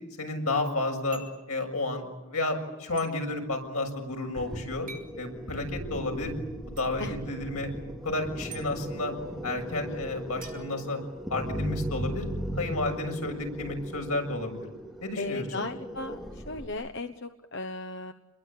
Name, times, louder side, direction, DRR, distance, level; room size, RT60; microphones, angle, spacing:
voice 1, 0.2-1.2 1.5-4.9 5.2-6.3 6.8-7.7 8.0-9.1 9.4-11.0 11.3-12.3 12.6-14.7 15.0-15.7, left 2 dB, 85° left, 3 dB, 7.1 m, -31 dB
sound 1, 1.1-1.5 3.0-3.1 4.9-5.2 6.8-6.9 8.5-8.7 10.4-11.5, right 5 dB, 40° right, 6.4 m, -47 dB
sound 2, 4.4-16.7, equal, ahead, 3.1 m, -38 dB
voice 2, 9.7-10.0 15.2-18.1, left 2 dB, 50° left, 6 dB, 1.1 m, -36 dB
29.5 x 22.0 x 8.6 m, 0.97 s
head